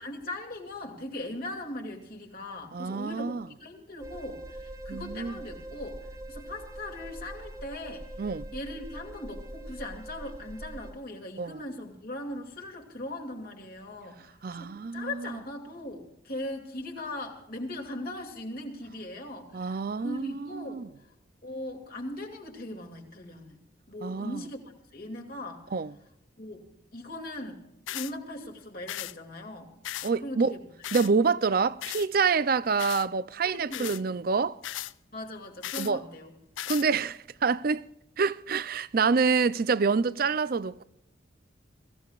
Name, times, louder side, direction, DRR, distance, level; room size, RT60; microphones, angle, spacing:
voice 1, 0.0-3.3 3.6-6.0 6.3-8.1 8.5-20.8 21.4-23.6 23.9-24.6 24.9-25.6 26.4-26.7 26.9-27.6 27.9-29.7 30.2-30.6 33.4-34.0 35.1-36.3, left 1 dB, 50° left, 2.5 m, -39 dB
voice 2, 2.7-3.5 4.9-5.3 8.2-8.5 11.4-11.6 14.4-15.3 19.5-20.9 24.0-24.4 25.7-25.9 30.0-30.5 30.9-34.6 35.8-36.0 36.7-37.8 38.2-40.8, right 5 dB, 50° right, 0.5 m, -27 dB
sound 1, 4.0-10.9, right 1 dB, 15° right, 1.5 m, -43 dB
sound 2, 27.9-28.1 28.9-29.1 29.8-30.1 30.8-31.1 31.8-32.1 32.8-33.1 33.7-34.0 34.6-34.9 35.6-35.9 36.6-36.9, left 13 dB, 85° left, 0.4 m, -36 dB
23.0 x 15.0 x 2.4 m
head